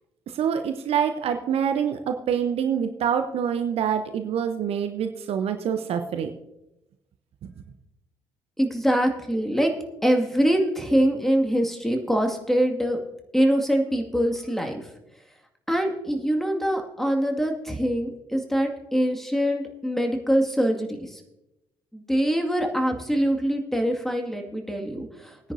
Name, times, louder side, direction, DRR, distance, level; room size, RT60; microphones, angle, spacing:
voice 1, 0.3-6.3, right 8 dB, 55° right, 7 dB, 0.8 m, -26 dB
voice 2, 8.6-9.7 10.0-13.0 13.3-14.8 15.7-21.0 21.9-25.3, equal, 5° left, 3 dB, 2.2 m, -24 dB
20.0 x 9.9 x 2.7 m, 0.91 s
figure-of-eight pair, 45°, 12 cm